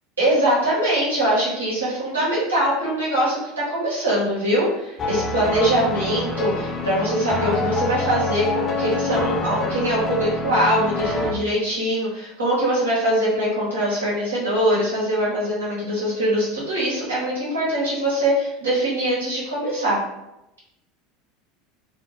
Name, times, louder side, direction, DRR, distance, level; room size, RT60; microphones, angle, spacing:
voice 1, 0.2-20.0, right 1 dB, 85° right, -8 dB, 1.1 m, -22 dB
sound 1, 5.0-11.3, left 3 dB, 30° left, 0.5 m, -26 dB
2.5 x 2.4 x 3.1 m, 0.91 s
figure-of-eight pair, 75°, 0 cm